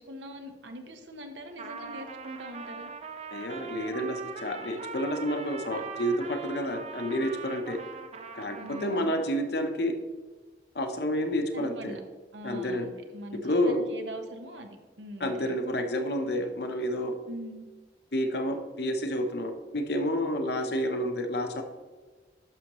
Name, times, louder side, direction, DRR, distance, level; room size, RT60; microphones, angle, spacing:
voice 1, 0.0-2.9 8.6-9.2 11.5-12.0 12.3-15.5 17.3-17.7, equal, 85° right, 5 dB, 1.1 m, -42 dB
Trumpet, 1.5-9.4, right 4 dB, 35° right, 0.6 m, -41 dB
voice 2, 3.3-7.8 8.3-9.9 10.7-12.0 12.4-12.9 13.4-13.8 15.2-17.1 18.1-21.6, equal, 60° left, 5 dB, 0.9 m, -29 dB
11.0 x 6.3 x 3.1 m, 1.3 s
head